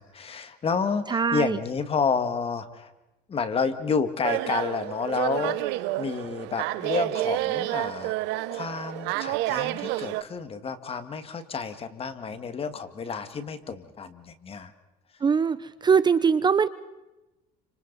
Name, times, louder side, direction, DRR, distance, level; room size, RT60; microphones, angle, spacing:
voice 1, 0.0-2.9 3.3-8.1 8.5-14.7, left 5 dB, 30° left, 10 dB, 1.9 m, -30 dB
voice 2, 1.1-1.6 15.2-16.7, right 6 dB, 25° right, 14 dB, 0.7 m, -22 dB
sound 1, 4.2-10.2, right 17 dB, 75° right, 0.9 m, -29 dB
29.5 x 26.5 x 4.1 m, 1.0 s
supercardioid pair, 110°, 18 cm